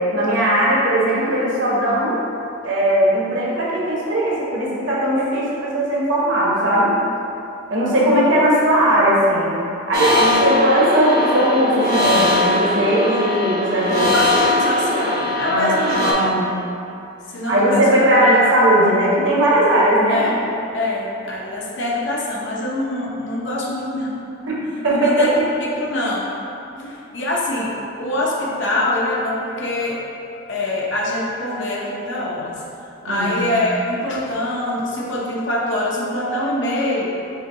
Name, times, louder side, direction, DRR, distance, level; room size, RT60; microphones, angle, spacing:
voice 1, 0.1-2.2 2.6-6.9 7.7-9.5 9.9-14.1 15.5-16.5 17.4-20.4 24.5-24.6 24.8-25.3 26.7-26.9 33.0-33.5, right 1 dB, 60° right, -6 dB, 1.0 m, -18 dB
sound 1, 9.9-16.1, left 1 dB, 45° right, 0.6 m, -20 dB
voice 2, 14.1-16.1 17.3-17.9 20.1-20.5 20.7-24.1 24.9-25.3 25.6-26.3 26.8-27.7 28.0-30.0 30.5-32.6 33.0-37.1, left 1 dB, 55° left, -4 dB, 0.7 m, -24 dB
5.5 x 2.3 x 3.8 m, 2.7 s
head